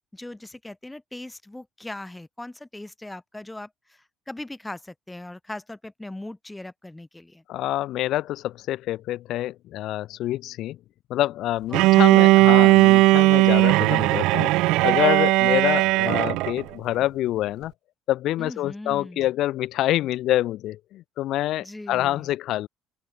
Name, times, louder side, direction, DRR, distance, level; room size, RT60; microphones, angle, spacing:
voice 1, 0.1-7.4 11.7-12.5 18.4-19.3 21.6-22.3, left 1 dB, 10° left, 5.7 m, -39 dB
voice 2, 7.5-10.8 11.1-17.7 18.1-22.7, left 14 dB, 65° left, 0.6 m, -26 dB
Bowed string instrument, 11.7-16.6, right 20 dB, 70° right, 0.7 m, -17 dB
open air
hypercardioid pair, 60°, 0 cm